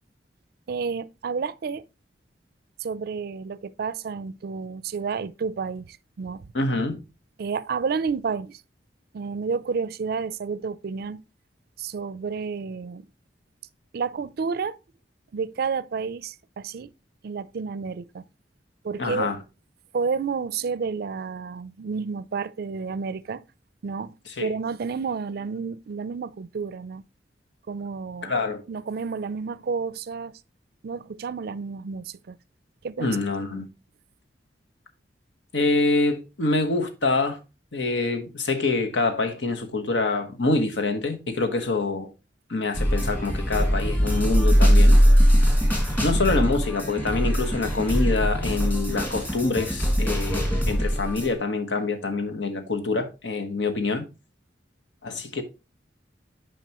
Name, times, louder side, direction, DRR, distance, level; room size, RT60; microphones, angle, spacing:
voice 1, 0.7-1.8 2.8-6.5 7.4-8.6 9.1-11.2 11.8-13.0 13.9-14.8 15.3-16.9 17.2-18.2 18.8-19.3 19.9-23.4 23.8-24.1 24.4-27.0 27.7-28.3 28.7-30.4 30.8-32.4 32.8-33.2 33.5-33.6, right 5 dB, 60° right, 0.4 m, -30 dB
voice 2, 6.5-7.0 19.0-19.4 24.4-24.5 28.2-28.6 33.0-33.7 35.5-37.4 37.7-42.1 42.5-45.0 46.0-54.1 55.0-55.4, left 3 dB, 90° left, 1.2 m, -26 dB
sound 1, 42.7-51.3, equal, 10° left, 1.8 m, -21 dB
9.1 x 5.1 x 2.9 m
head